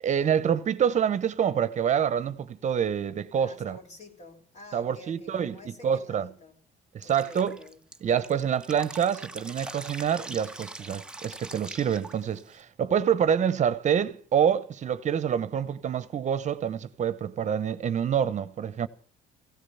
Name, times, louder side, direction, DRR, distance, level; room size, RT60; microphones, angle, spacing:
voice 1, 0.0-3.8 4.7-5.6 5.8-6.3 6.9-7.6 8.0-18.9, right 8 dB, 45° right, 0.9 m, -26 dB
voice 2, 3.3-6.6 7.0-7.8, left 1 dB, 40° left, 3.8 m, -49 dB
Drip, 7.0-12.6, right 2 dB, 5° right, 0.8 m, -43 dB
16.5 x 15.5 x 5.7 m
cardioid pair, 110°, 17 cm